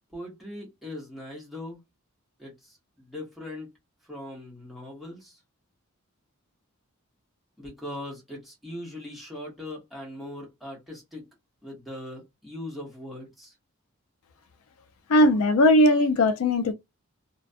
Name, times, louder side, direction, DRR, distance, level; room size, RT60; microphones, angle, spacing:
voice 1, 0.1-1.8 2.4-3.7 4.1-5.4 7.6-11.2 11.6-13.5, left 1 dB, ahead, 1.0 m, -40 dB
voice 2, 15.1-16.7, left 1 dB, 75° left, 0.4 m, -19 dB
2.4 x 2.2 x 2.5 m
head